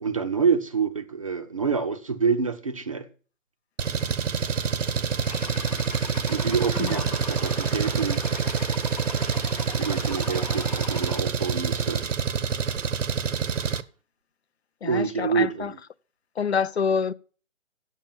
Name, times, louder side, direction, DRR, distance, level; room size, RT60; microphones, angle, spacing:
voice 1, 0.0-3.1 6.3-8.2 9.8-12.0 14.8-15.8, right 5 dB, 25° right, 0.6 m, -27 dB
Engine, 3.8-13.8, right 6 dB, 70° right, 0.8 m, -26 dB
sound 1, 5.2-11.2, left 6 dB, 30° left, 0.8 m, -40 dB
voice 2, 14.8-15.7 16.4-17.1, left 6 dB, 55° left, 0.5 m, -26 dB
8.5 x 7.4 x 7.2 m
figure-of-eight pair, 145°, 39 cm